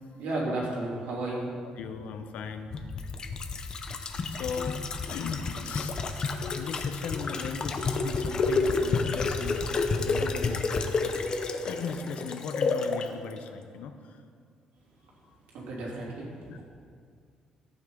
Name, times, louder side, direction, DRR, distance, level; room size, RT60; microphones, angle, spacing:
voice 1, 0.2-1.5 15.5-16.3, right 2 dB, 85° right, -4 dB, 3.2 m, -32 dB
voice 2, 1.8-2.8 4.3-4.8 5.1-6.0 6.5-9.6 10.0-10.9 11.6-13.9 16.5-16.6, left 6 dB, 70° left, 7 dB, 0.8 m, -38 dB
sound 1, 2.7-13.1 13.4-13.5, left 4 dB, 35° left, 0.7 m, -30 dB
13.5 x 9.0 x 3.9 m, 2.2 s
cardioid pair, 160°, 2 cm